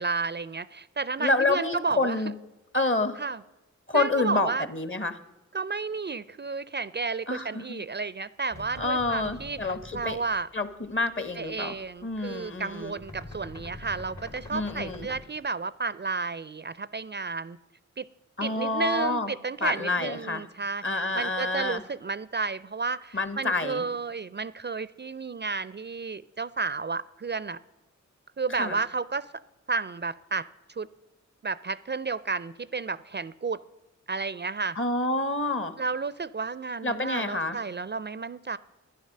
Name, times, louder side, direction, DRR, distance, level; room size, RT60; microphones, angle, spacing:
voice 1, 0.0-2.3 3.1-3.4 3.9-4.7 5.5-10.5 11.3-17.6 18.0-18.1 18.4-27.6 28.4-29.3 29.7-30.9 31.4-33.6 34.1-34.8 35.8-38.6, right 4 dB, 35° right, 17 dB, 0.4 m, -32 dB
voice 2, 1.2-2.3 2.7-3.2 3.9-5.2 7.3-7.8 8.8-10.2 10.5-11.8 12.0-12.9 14.5-15.1 18.4-19.3 19.6-20.4 20.8-21.8 23.1-23.8 28.5-28.8 34.8-35.7 36.8-37.6, left 2 dB, 40° left, 12 dB, 1.2 m, -28 dB
sound 1, 8.5-10.4 10.7-11.0 11.3-11.5 11.8-15.2, left 1 dB, 70° left, 2.8 m, -44 dB
11.5 x 9.9 x 6.5 m, 1.0 s
cardioid pair, 40°, 30 cm